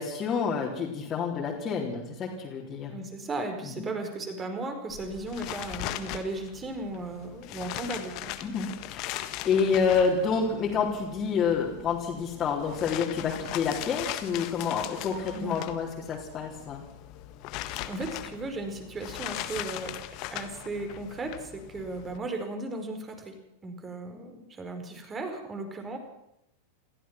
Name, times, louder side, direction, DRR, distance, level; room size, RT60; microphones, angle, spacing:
voice 1, 0.0-3.0 3.6-3.8 8.4-16.8, left 6 dB, 25° left, -3 dB, 3.8 m, -28 dB
voice 2, 2.9-8.3 15.3-15.6 17.9-19.9 20.3-23.4 23.6-26.0, right 2 dB, 20° right, 6 dB, 4.9 m, -36 dB
sound 1, 4.9-22.2, left 14 dB, 40° left, 1.6 m, -40 dB
28.5 x 15.0 x 6.1 m, 0.82 s
figure-of-eight pair, 90°, 0 cm